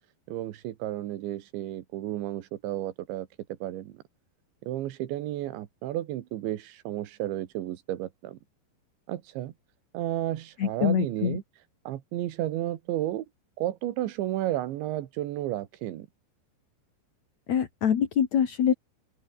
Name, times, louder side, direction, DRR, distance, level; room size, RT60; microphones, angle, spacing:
voice 1, 0.3-4.0 4.6-8.4 9.1-9.5 9.9-13.3 13.6-16.1, right 14 dB, 80° right, 3.8 m, -32 dB
voice 2, 10.6-11.4 17.5-18.7, left 8 dB, 45° left, 2.8 m, -24 dB
open air
omnidirectional pair, 5.3 m